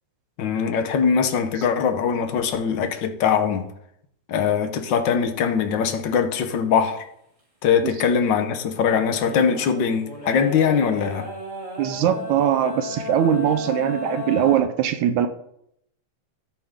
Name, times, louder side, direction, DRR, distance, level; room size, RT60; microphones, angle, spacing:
voice 1, 0.4-3.6 4.3-7.0 7.6-11.3, left 7 dB, 65° left, 1.1 m, -22 dB
sound 1, 9.2-14.6, left 3 dB, 15° right, 1.9 m, -34 dB
voice 2, 11.8-15.3, right 10 dB, 90° right, 2.2 m, -21 dB
13.0 x 8.5 x 3.7 m
omnidirectional pair, 3.3 m